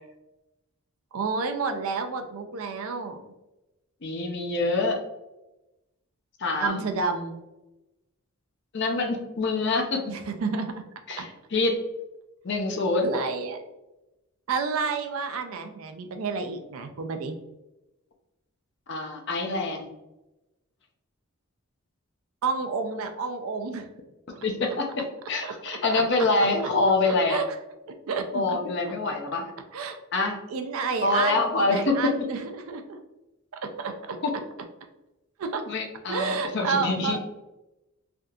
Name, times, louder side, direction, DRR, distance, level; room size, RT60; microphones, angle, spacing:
voice 1, 1.1-3.2 6.6-7.4 10.1-10.7 11.2-11.3 13.0-13.6 14.5-17.3 22.4-23.9 24.4-24.5 25.4-26.3 27.1-27.4 27.9-28.6 29.7-30.0 30.5-33.0 33.6-34.2 35.4-35.6 36.1-37.2, right 4 dB, 70° right, 6 dB, 0.4 m, -30 dB
voice 2, 4.0-5.0 6.4-6.8 8.7-10.1 11.1-11.8 12.4-13.1 18.9-19.9 24.4-27.4 28.3-29.5 30.1-30.4 31.0-32.1 34.2-34.3 35.7-37.2, left 3 dB, 50° left, 2 dB, 0.5 m, -25 dB
3.4 x 2.7 x 2.3 m, 0.98 s
head